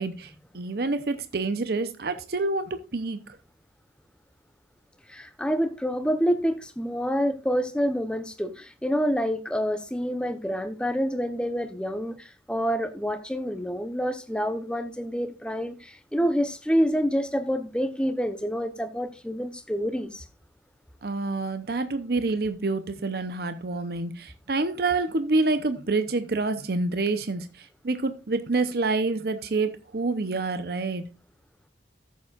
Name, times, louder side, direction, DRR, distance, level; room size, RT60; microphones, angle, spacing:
voice 1, 0.0-3.2 21.0-31.0, right 3 dB, 55° right, 0.7 m, -27 dB
voice 2, 5.1-20.2, equal, 5° left, 0.8 m, -27 dB
14.0 x 7.3 x 2.4 m
head